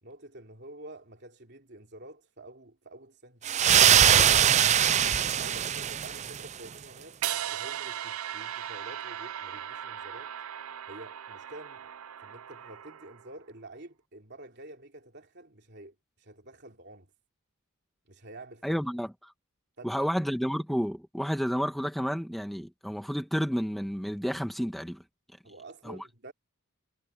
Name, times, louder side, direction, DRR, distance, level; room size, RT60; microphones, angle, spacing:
voice 1, 0.0-3.7 4.9-10.3 10.9-11.9 12.2-17.1 18.0-18.8 19.8-20.1 25.4-26.3, right 1 dB, 50° right, 3.1 m, -49 dB
sound 1, 3.4-6.5, right 9 dB, 30° right, 0.4 m, -22 dB
sound 2, 7.2-13.3, right 10 dB, 75° right, 0.6 m, -38 dB
voice 2, 18.6-19.1 19.8-25.0 25.8-26.0, equal, ahead, 1.9 m, -30 dB
head